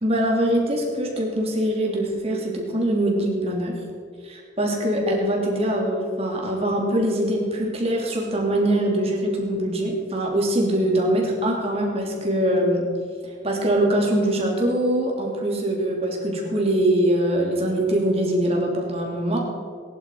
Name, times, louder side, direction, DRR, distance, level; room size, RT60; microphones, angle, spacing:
voice 1, 0.0-3.8 4.2-12.8 13.4-19.4, right 1 dB, 35° right, -1 dB, 3.1 m, -23 dB
20.0 x 11.0 x 4.9 m, 2.2 s
head